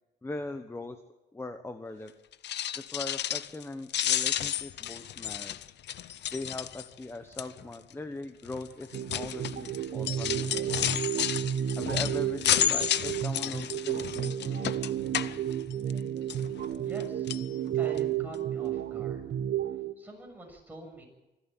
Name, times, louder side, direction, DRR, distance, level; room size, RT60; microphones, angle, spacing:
voice 1, 0.2-1.0 1.3-2.1 2.7-5.6 6.3-10.9 11.8-14.7, left 2 dB, 15° left, 8 dB, 1.2 m, -40 dB
sound 1, 2.3-3.6 3.9-7.0 7.4-7.7 8.5-16.0 16.3-17.0 17.3-17.5 18.0-18.1 18.3-18.4, left 11 dB, 70° left, 0.7 m, -31 dB
sound 2, 8.9-19.9, right 10 dB, 75° right, 1.5 m, -32 dB
voice 2, 16.8-17.3 17.8-19.2 20.0-21.0, right 1 dB, 10° right, 1 dB, 6.9 m, -45 dB
25.0 x 13.0 x 9.0 m, 1.0 s
cardioid pair, 125°, 18 cm